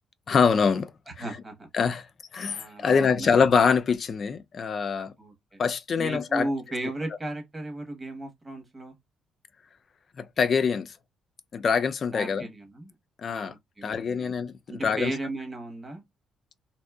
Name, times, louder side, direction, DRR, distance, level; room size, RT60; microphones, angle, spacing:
voice 1, 0.3-0.9 1.2-1.3 1.7-2.1 2.3-5.1 5.6-6.5 10.2-10.9 11.5-12.5 13.2-13.5 13.8-14.5 14.8-15.1, left 5 dB, 50° left, 0.3 m, -24 dB
voice 2, 1.2-1.7 2.5-3.4 5.2-5.6 6.0-8.9 12.1-12.9 13.3-14.3 14.7-16.0, right 1 dB, 20° right, 1.1 m, -35 dB
2.6 x 2.3 x 2.3 m
cardioid pair, 90°, 0 cm